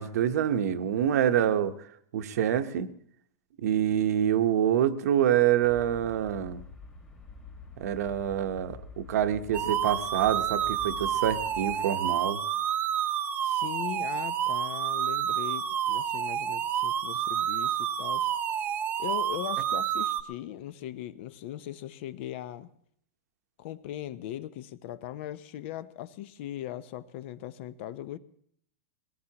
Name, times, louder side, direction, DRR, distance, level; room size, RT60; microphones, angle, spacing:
voice 1, 0.0-1.7 2.1-2.9 3.6-6.6 7.8-12.4, right 10 dB, 65° right, 9 dB, 0.9 m, -26 dB
sound 1, 5.6-11.8, left 3 dB, 15° left, 1.6 m, -47 dB
sound 2, 9.5-20.2, right 9 dB, 20° right, 0.7 m, -29 dB
voice 2, 13.4-18.3 19.0-22.7 23.6-28.2, left 12 dB, 45° left, 15 dB, 0.6 m, -39 dB
22.0 x 18.5 x 2.9 m, 0.65 s
supercardioid pair, 165°, 9 cm